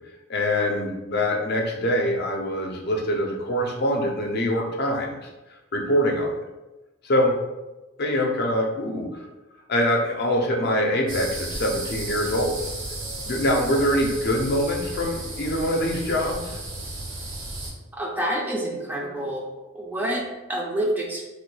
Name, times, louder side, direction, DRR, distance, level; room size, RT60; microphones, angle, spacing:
voice 1, 0.3-5.3 5.7-6.4 7.0-7.3 8.0-9.1 9.7-12.6 13.2-16.6, equal, 55° left, 1 dB, 0.5 m, -24 dB
sound 1, 11.1-17.7, right 2 dB, 80° right, 0.8 m, -34 dB
voice 2, 17.9-19.5 19.7-21.2, right 1 dB, 10° right, -1 dB, 0.3 m, -28 dB
3.1 x 2.2 x 3.1 m, 1.1 s
head